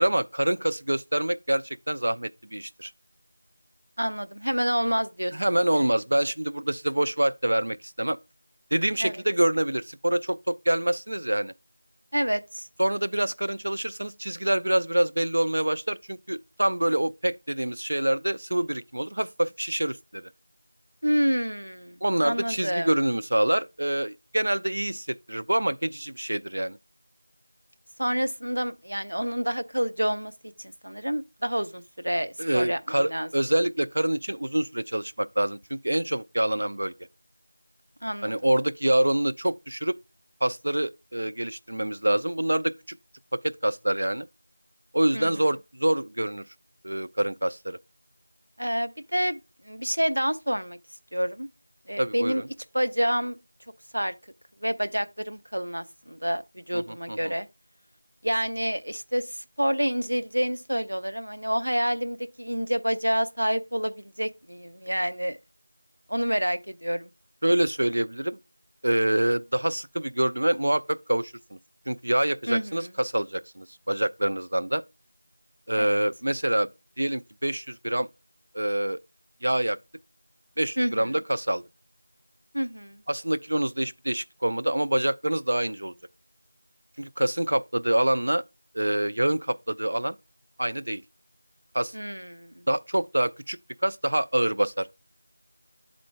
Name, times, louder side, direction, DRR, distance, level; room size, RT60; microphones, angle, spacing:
voice 1, 0.0-2.9 5.3-8.2 8.7-11.5 12.8-20.2 22.0-26.8 32.4-35.6 35.8-36.9 38.2-40.0 40.4-43.0 43.4-44.3 44.9-46.4 46.8-47.8 52.0-52.4 56.7-57.3 67.4-68.4 68.8-71.6 71.9-74.8 75.7-76.7 77.0-78.1 78.5-79.0 79.4-79.8 80.6-81.6 83.1-85.9 87.0-88.4 88.7-90.2 90.6-91.0 91.7-91.9 92.7-94.9, right 1 dB, 40° right, 0.3 m, -26 dB
voice 2, 4.0-5.3 5.7-5.9 9.0-9.2 12.1-12.7 21.0-22.9 28.0-30.3 30.6-33.3 38.0-38.3 45.1-45.4 48.6-50.8 51.1-51.5 51.9-52.4 52.7-53.4 53.9-54.1 54.6-57.5 58.2-65.4 66.1-67.1 72.5-72.9 75.8-76.0 80.8-81.2 82.5-83.0 91.9-92.5, equal, 85° right, 0.7 m, -28 dB
10.0 x 3.8 x 3.4 m
figure-of-eight pair, 175°, 0 cm